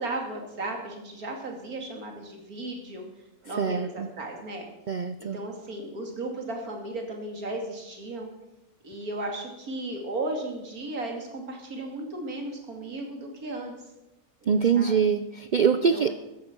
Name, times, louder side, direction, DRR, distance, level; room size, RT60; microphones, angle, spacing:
voice 1, 0.0-3.0 3.4-4.6 5.2-8.3 8.8-13.7 14.4-14.9 15.9-16.1, right 2 dB, 85° right, 2 dB, 3.0 m, -35 dB
voice 2, 3.6-4.1 4.9-5.4 14.5-16.1, right 6 dB, 70° right, 11 dB, 0.4 m, -24 dB
14.5 x 10.5 x 6.0 m, 0.93 s
omnidirectional pair, 1.5 m